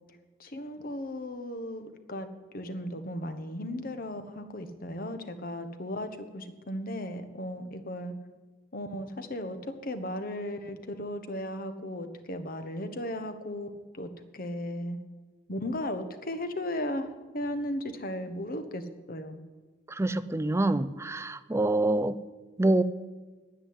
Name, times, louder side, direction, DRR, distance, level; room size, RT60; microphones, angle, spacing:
voice 1, 0.4-2.3 2.5-8.1 8.7-9.6 9.8-13.7 14.0-14.1 14.3-15.0 15.5-18.8 19.1-19.4, left 1 dB, 50° left, 8 dB, 1.2 m, -36 dB
voice 2, 20.0-22.2 22.6-22.8, right 2 dB, 15° right, 14 dB, 0.5 m, -26 dB
9.9 x 9.6 x 9.7 m, 1.4 s
head